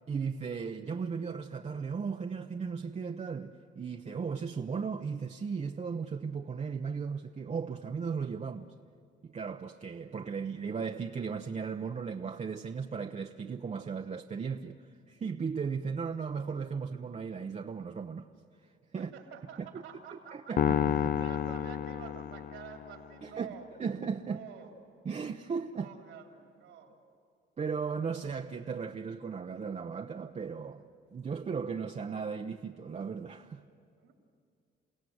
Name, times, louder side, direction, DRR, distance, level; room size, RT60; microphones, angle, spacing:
voice 1, 0.1-8.7 9.2-14.8 15.1-18.3 18.9-19.1 20.3-20.6 23.2-23.5 23.8-24.4 25.1-25.9 27.6-30.8 31.1-33.6, right 5 dB, 35° right, 0.7 m, -36 dB
voice 2, 19.0-23.6 24.2-24.7 25.7-27.0 33.9-34.1, right 7 dB, 85° right, 3.2 m, -48 dB
sound 1, 20.6-23.0, left 9 dB, 50° left, 0.5 m, -30 dB
29.0 x 17.0 x 7.9 m
cardioid pair, 90°, 20 cm